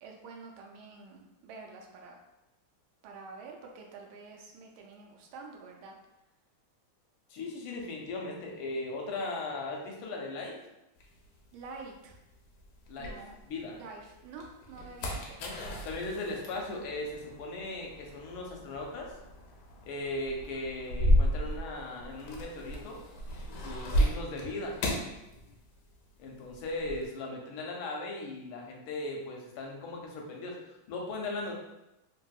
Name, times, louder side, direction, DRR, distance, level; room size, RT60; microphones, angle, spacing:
voice 1, 0.0-2.2 3.0-5.9 11.5-12.2 13.0-13.4 13.8-15.4, right 4 dB, 80° right, 1 dB, 1.4 m, -47 dB
voice 2, 7.3-10.6 12.9-13.8 15.4-15.6 15.8-19.1 19.8-23.0 23.6-24.8 26.2-31.5, left 2 dB, 90° left, 0 dB, 1.4 m, -38 dB
sound 1, 11.0-13.8 14.2-26.0 26.2-27.1, equal, 75° left, 1.0 m, -33 dB
3.3 x 2.7 x 2.3 m, 0.92 s
omnidirectional pair, 2.2 m